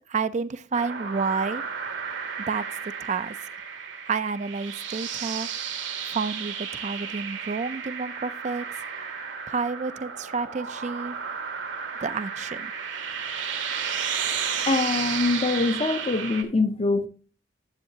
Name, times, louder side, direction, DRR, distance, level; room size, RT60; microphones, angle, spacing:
voice 1, 0.1-1.6 2.5-2.7 3.0-3.4 4.0-5.5 6.1-8.8 9.5-11.2 12.0-12.7, right 5 dB, 40° right, 0.4 m, -30 dB
sound 1, 0.7-16.4, right 7 dB, 75° right, 1.6 m, -33 dB
voice 2, 14.7-17.1, left 3 dB, 30° left, 0.6 m, -24 dB
10.5 x 7.5 x 2.8 m
head